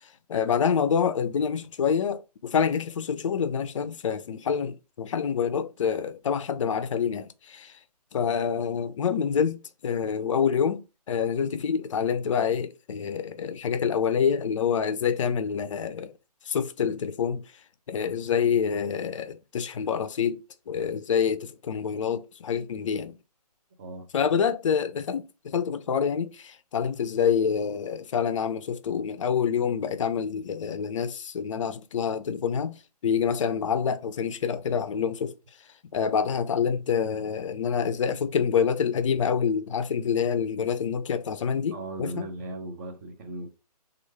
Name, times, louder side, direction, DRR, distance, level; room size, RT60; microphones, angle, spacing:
voice 1, 0.3-7.7 8.1-16.1 16.5-17.4 17.9-20.4 20.7-23.1 24.1-32.8 33.0-35.3 35.9-42.3, left 7 dB, 50° left, 0.4 m, -27 dB
voice 2, 41.7-43.5, right 2 dB, 25° right, 0.6 m, -37 dB
3.1 x 2.4 x 3.3 m
hypercardioid pair, 150°, 21 cm